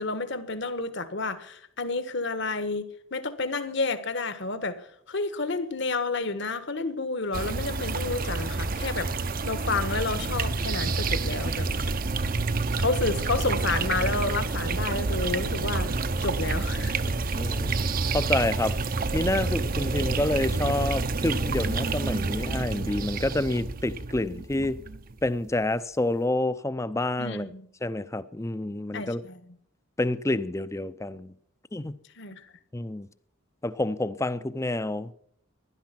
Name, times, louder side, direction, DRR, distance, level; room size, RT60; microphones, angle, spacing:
voice 1, 0.0-4.8 5.1-9.1 9.4-11.7 12.8-15.9 16.2-17.0 27.2-27.6 28.9-29.4 32.2-32.4, left 3 dB, 60° left, 1.4 m, -30 dB
sound 1, 7.3-25.5, right 3 dB, 45° right, 0.7 m, -28 dB
voice 2, 17.3-17.7 18.1-18.8 19.1-24.8 25.2-27.5 27.8-29.2 30.0-31.3 31.7-31.9 32.7-33.1 33.6-35.1, left 1 dB, 15° left, 0.5 m, -28 dB
16.5 x 11.5 x 5.9 m
head